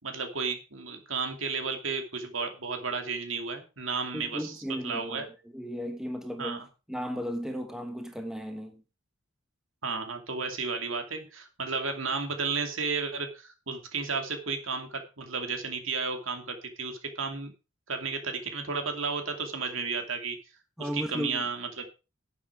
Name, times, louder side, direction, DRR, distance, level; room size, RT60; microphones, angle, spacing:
voice 1, 0.0-4.6 4.8-5.3 6.4-6.7 9.8-17.5 17.9-20.4 20.8-22.0, right 4 dB, 70° right, 2.6 m, -33 dB
voice 2, 4.1-5.3 5.5-8.8 20.8-21.4, equal, 5° right, 1.2 m, -35 dB
11.0 x 8.4 x 4.8 m
head